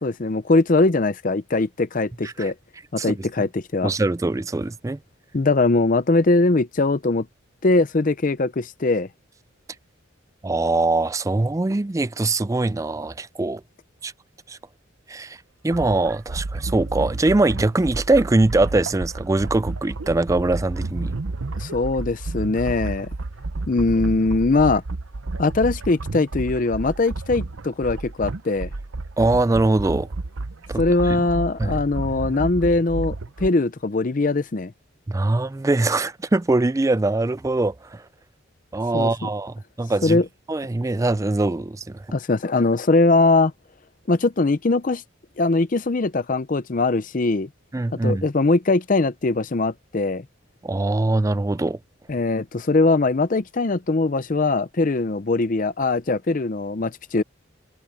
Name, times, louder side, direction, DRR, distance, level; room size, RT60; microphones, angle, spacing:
voice 1, 0.0-2.5 2.9-3.9 5.3-7.3 7.6-9.1 21.6-23.1 23.7-24.8 25.4-28.7 30.8-34.7 38.9-39.3 40.0-40.3 42.1-43.5 44.1-45.0 45.4-47.5 48.0-50.2 52.1-57.2, left 3 dB, 40° left, 0.6 m, -21 dB
voice 2, 3.8-5.0 10.4-13.6 14.0-14.1 14.5-14.6 15.1-15.4 15.6-21.2 29.2-30.1 30.7-30.8 31.6-31.8 35.1-38.0 38.7-40.2 40.5-42.0 47.7-48.2 50.6-51.8, right 2 dB, 15° right, 0.3 m, -22 dB
sound 1, 15.7-33.5, right 2 dB, 85° right, 0.9 m, -31 dB
head